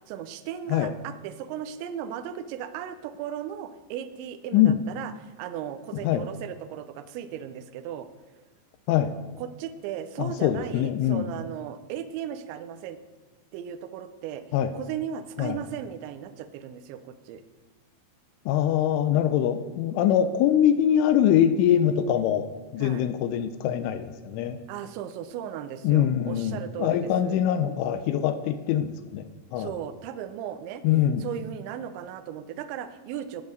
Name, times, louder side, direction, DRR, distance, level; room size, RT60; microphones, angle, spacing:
voice 1, 0.1-8.1 9.4-13.0 13.5-14.4 14.7-17.4 22.8-23.1 24.7-27.4 29.6-30.8 31.2-33.4, right 9 dB, 80° right, 9 dB, 2.9 m, -36 dB
voice 2, 4.5-4.8 6.0-6.3 8.9-9.1 10.2-11.3 14.5-14.7 15.4-15.6 18.5-24.6 25.8-29.7 30.8-31.3, left 10 dB, 85° left, 10 dB, 3.1 m, -23 dB
16.0 x 7.2 x 6.5 m, 1.2 s
omnidirectional pair, 5.7 m